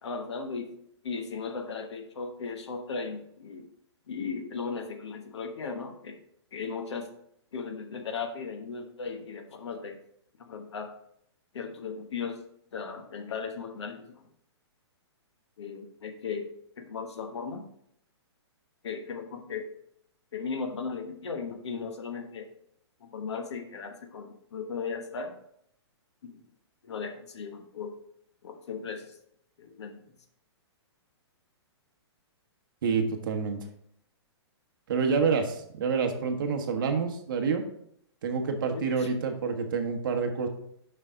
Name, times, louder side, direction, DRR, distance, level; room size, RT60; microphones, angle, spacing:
voice 1, 0.0-0.7 1.0-3.7 4.1-6.2 6.5-7.1 7.5-10.0 10.4-10.9 11.5-12.4 12.7-14.2 15.6-16.5 16.8-17.7 18.8-19.7 20.3-22.5 23.0-25.3 26.2-26.4 26.8-27.9 28.4-29.1 29.6-30.0 38.7-39.1, left 5 dB, 75° left, 6 dB, 1.2 m, -36 dB
voice 2, 32.8-33.6 34.9-37.6 38.2-40.5, right 5 dB, 45° right, 4 dB, 1.1 m, -28 dB
6.9 x 5.6 x 3.8 m, 0.71 s
hypercardioid pair, 170°, 15 cm